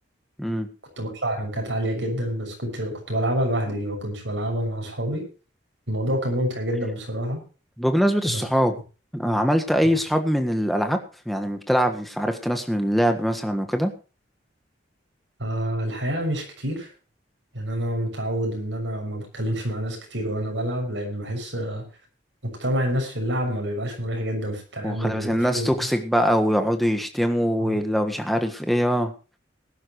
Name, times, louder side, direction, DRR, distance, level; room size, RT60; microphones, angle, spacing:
voice 1, 1.0-5.2 5.9-7.4 8.3-8.4 15.4-16.9 17.5-21.8 22.4-25.9 27.6-27.8, equal, 75° right, 2 dB, 6.5 m, -27 dB
voice 2, 7.8-8.7 9.1-11.0 11.2-13.9 24.8-29.1, equal, ahead, 5 dB, 1.5 m, -23 dB
19.5 x 11.5 x 3.1 m, 0.34 s
head